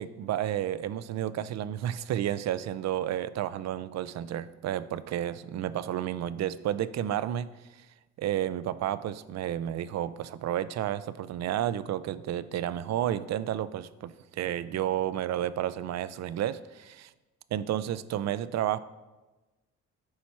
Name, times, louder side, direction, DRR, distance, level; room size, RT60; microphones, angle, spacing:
voice 1, 0.0-7.5 8.2-17.1 17.5-18.8, right 11 dB, 60° right, 0.5 m, -31 dB
10.5 x 4.2 x 4.4 m
cardioid pair, 90°, 30 cm